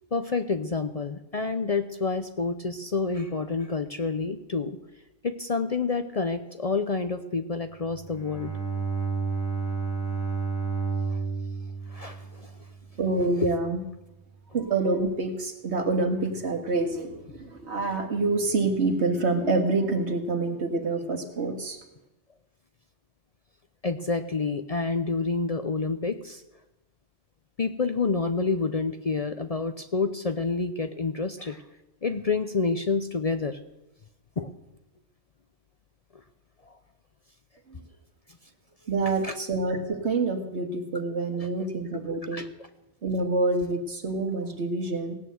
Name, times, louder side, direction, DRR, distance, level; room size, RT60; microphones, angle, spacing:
voice 1, 0.1-4.8 5.2-8.5 11.1-11.2 11.9-12.5 13.4-13.5 23.8-26.4 27.6-31.6 32.0-33.6 34.4-34.5 39.2-39.3 41.4-41.5 41.9-42.5, left 4 dB, 40° left, 9 dB, 0.6 m, -28 dB
Bowed string instrument, 7.8-13.1, right 5 dB, 75° left, 4.3 m, -31 dB
voice 2, 13.0-13.8 14.5-21.8 37.7-37.8 38.9-42.4 43.0-45.1, right 3 dB, 70° right, 5 dB, 2.0 m, -27 dB
17.0 x 9.1 x 7.8 m, 0.96 s
omnidirectional pair, 1.2 m